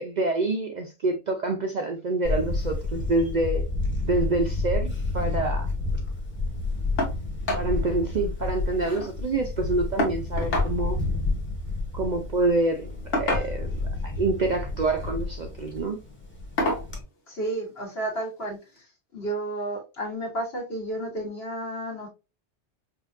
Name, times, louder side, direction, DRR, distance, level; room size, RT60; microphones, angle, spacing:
voice 1, 0.0-3.7 4.0-5.7 7.6-11.0 11.9-13.7 14.0-16.0, right 2 dB, 50° right, 0.5 m, -27 dB
Camera, 2.2-17.0, left 3 dB, 10° left, 0.9 m, -30 dB
sound 1, 7.0-7.2 7.5-7.7 8.1-8.2 8.4-9.1 10.0-10.7 12.0-12.2 13.1-13.8 14.8-15.1 15.6-15.8 16.6-16.9 18.2-18.3 18.8-18.9, left 1 dB, 90° left, 1.5 m, -28 dB
voice 2, 17.3-22.1, right 1 dB, 60° left, 1.6 m, -32 dB
5.3 x 2.5 x 2.5 m
omnidirectional pair, 1.2 m